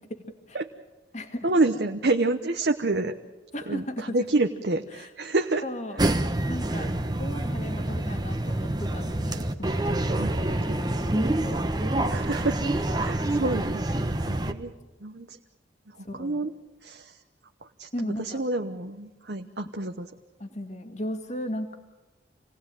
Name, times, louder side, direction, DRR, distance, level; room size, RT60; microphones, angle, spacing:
voice 1, 0.1-0.6 1.1-1.5 3.5-4.2 4.9-5.1 5.6-6.0 6.5-11.7 16.0-16.5 17.9-18.4 20.4-21.8, left 1 dB, 40° left, 6 dB, 2.0 m, -37 dB
voice 2, 1.4-3.1 3.7-5.6 10.1-10.3 12.1-14.0 14.3-14.7 15.0-15.4 15.9-16.5 16.8-17.2 17.6-20.1, right 2 dB, 60° right, 4 dB, 1.0 m, -28 dB
sound 1, 6.0-14.5, right 1 dB, 20° right, 1.1 m, -27 dB
27.5 x 18.5 x 9.0 m, 1.1 s
head